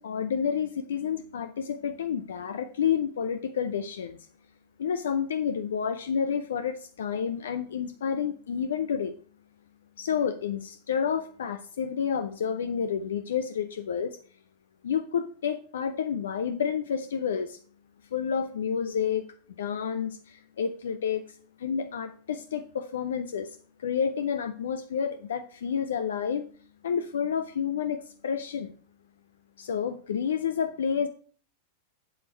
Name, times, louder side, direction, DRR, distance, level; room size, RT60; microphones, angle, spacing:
voice 1, 0.0-4.2 4.8-9.1 10.0-14.2 14.8-17.6 18.1-19.3 19.6-26.4 26.8-28.7 29.6-31.1, left 7 dB, 65° left, 10 dB, 0.6 m, -30 dB
7.9 x 7.5 x 4.5 m, 0.43 s
figure-of-eight pair, 90°, 0 cm